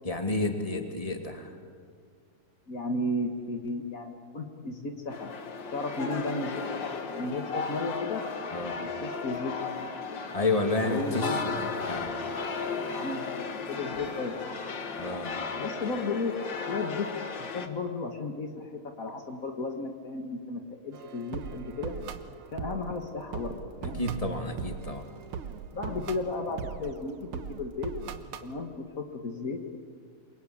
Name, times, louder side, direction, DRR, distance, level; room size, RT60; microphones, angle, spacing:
voice 1, 0.0-1.5 8.5-8.7 10.3-11.5 11.9-12.1 13.9-14.0 15.0-15.3 23.8-25.0, left 2 dB, 15° left, 5 dB, 1.7 m, -30 dB
voice 2, 2.7-5.3 5.7-8.2 8.8-10.2 10.8-11.5 12.2-12.4 12.7-14.5 15.6-16.4 16.7-17.1 17.5-21.9 22.5-23.5 23.8-24.0 25.7-27.9 28.4-29.6, left 3 dB, 80° left, 4 dB, 0.7 m, -34 dB
sound 1, 5.1-17.7, left 4 dB, 50° left, 1.5 m, -35 dB
sound 2, 20.9-28.5, right 7 dB, 80° right, 1.2 m, -40 dB
28.5 x 23.0 x 8.8 m, 2.2 s
omnidirectional pair, 4.2 m